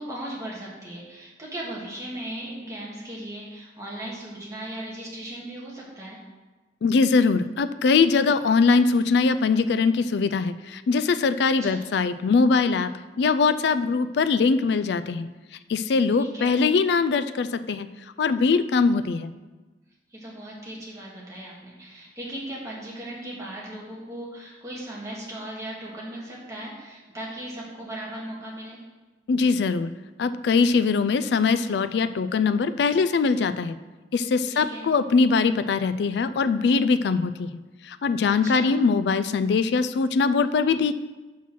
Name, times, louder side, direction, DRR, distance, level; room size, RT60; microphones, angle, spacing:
voice 1, 0.0-6.2 11.6-11.9 16.2-16.5 20.1-28.8 34.5-34.8 38.2-38.8, right 1 dB, 20° right, -5 dB, 1.8 m, -37 dB
voice 2, 6.8-12.9 13.2-15.3 15.7-17.9 18.2-19.3 29.3-29.9 30.2-33.8 34.1-37.5 37.8-40.9, left 4 dB, 60° left, 13 dB, 0.3 m, -22 dB
5.8 x 5.7 x 6.1 m, 1.2 s
head